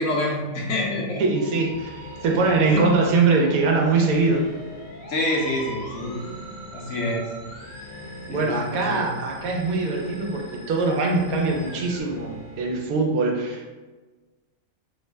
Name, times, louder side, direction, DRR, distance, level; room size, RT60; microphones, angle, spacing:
voice 1, 0.0-1.2 2.3-3.1 5.1-6.2 6.7-7.3 8.3-9.1, left 1 dB, 65° left, -2 dB, 1.0 m, -27 dB
voice 2, 1.2-4.5 8.3-13.7, right 3 dB, 80° right, 1 dB, 1.0 m, -22 dB
Musical instrument, 1.3-12.0, right 1 dB, 50° left, 0.5 m, -44 dB
sound 1, 1.7-13.0, left 1 dB, 25° right, 0.8 m, -42 dB
3.0 x 2.1 x 3.3 m, 1.3 s
omnidirectional pair, 1.5 m